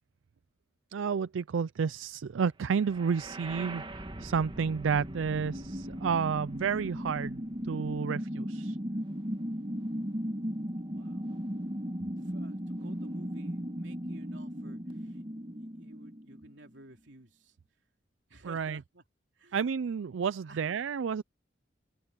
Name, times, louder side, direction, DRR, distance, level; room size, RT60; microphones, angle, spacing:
voice 1, 0.9-8.8 18.4-18.8 19.5-21.2, right 6 dB, 85° right, 0.4 m, -31 dB
sound 1, 2.8-16.8, equal, 25° right, 1.8 m, -37 dB
voice 2, 10.9-11.4 12.2-15.2 15.5-17.6 18.3-19.0 19.3-19.7 20.4-20.8, right 2 dB, 70° right, 3.1 m, -54 dB
open air
head